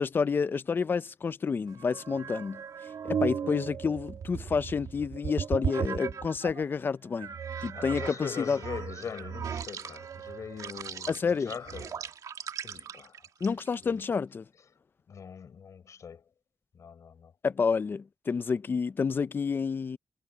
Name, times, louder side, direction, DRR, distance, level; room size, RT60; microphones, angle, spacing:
voice 1, 0.0-2.6 3.0-7.3 7.6-8.1 8.5-8.6 11.1-11.5 13.4-14.5 17.4-20.0, left 5 dB, 40° left, 0.5 m, -29 dB
sound 1, 1.7-6.6 7.2-13.8, right 7 dB, 85° right, 2.1 m, -36 dB
voice 2, 3.4-3.7 7.7-12.1 12.6-14.0 15.1-16.3 16.7-17.3, left 7 dB, 65° left, 6.0 m, -42 dB
wide cardioid pair, 170°, 6 cm